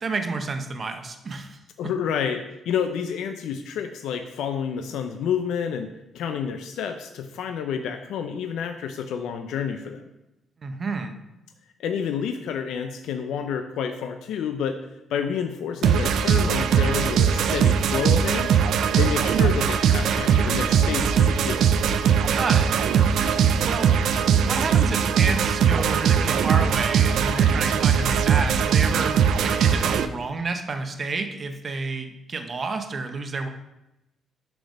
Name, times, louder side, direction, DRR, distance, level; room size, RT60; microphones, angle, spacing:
voice 1, 0.0-1.6 10.6-11.1 22.3-22.7 23.7-23.9 24.4-29.2 29.4-33.5, right 4 dB, 40° right, 6 dB, 0.7 m, -30 dB
voice 2, 1.8-10.0 11.8-14.8 15.1-18.6 18.9-21.7, left 7 dB, 80° left, 7 dB, 0.4 m, -29 dB
sound 1, 15.8-30.1, right 7 dB, 75° right, 0.4 m, -20 dB
6.1 x 3.4 x 5.0 m, 0.92 s
cardioid pair, 90°, 0 cm